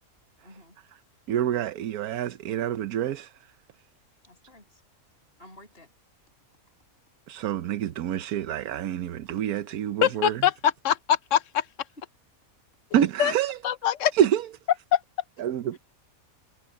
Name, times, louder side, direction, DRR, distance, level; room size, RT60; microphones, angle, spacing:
voice 1, 0.4-1.2 4.2-4.8 5.4-5.9 10.9-11.0 12.9-13.1, left 1 dB, 40° left, 7.1 m, -52 dB
voice 2, 1.3-3.3 7.3-10.3 12.9-13.6 14.1-14.4 15.4-15.8, right 10 dB, 85° right, 1.3 m, -27 dB
voice 3, 10.0-10.9 11.3-11.7 13.2-13.3 13.6-14.1 14.9-15.0, left 10 dB, 65° left, 0.9 m, -23 dB
omnidirectional pair, 1.5 m